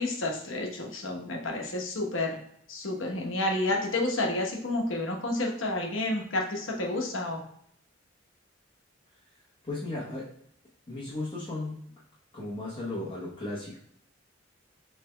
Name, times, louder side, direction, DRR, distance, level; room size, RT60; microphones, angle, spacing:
voice 1, 0.0-2.4 2.7-7.4, left 2 dB, 70° left, 0 dB, 1.1 m, -30 dB
voice 2, 9.6-10.3 10.9-11.8 12.3-13.8, left 2 dB, 25° left, -7 dB, 1.0 m, -35 dB
6.5 x 3.3 x 2.2 m, 0.67 s
head